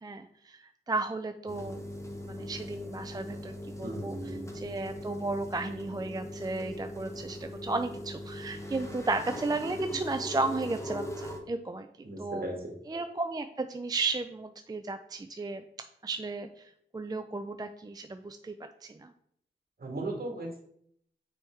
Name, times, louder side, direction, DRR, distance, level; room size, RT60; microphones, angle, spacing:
voice 1, 0.0-1.9 2.3-3.5 3.8-4.2 4.5-11.9 12.2-12.4 12.9-15.6 16.0-18.5 18.8-19.1, right 3 dB, 20° right, 8 dB, 0.4 m, -34 dB
sound 1, 1.5-11.4, left 1 dB, 15° left, 1.1 m, -40 dB
voice 2, 3.8-4.5 12.0-12.7 19.8-20.6, right 2 dB, 50° right, 0 dB, 1.9 m, -36 dB
6.1 x 3.5 x 4.5 m, 0.69 s
cardioid pair, 60°, 20 cm